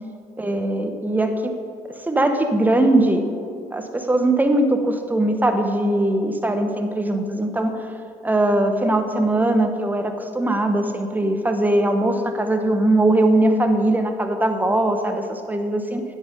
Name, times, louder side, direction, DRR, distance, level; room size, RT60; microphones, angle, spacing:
voice 1, 0.4-1.5 2.0-3.4 3.7-7.9 8.2-16.0, right 1 dB, 10° right, 6 dB, 0.9 m, -20 dB
9.3 x 5.6 x 5.3 m, 2.5 s
supercardioid pair, 75°, 15 cm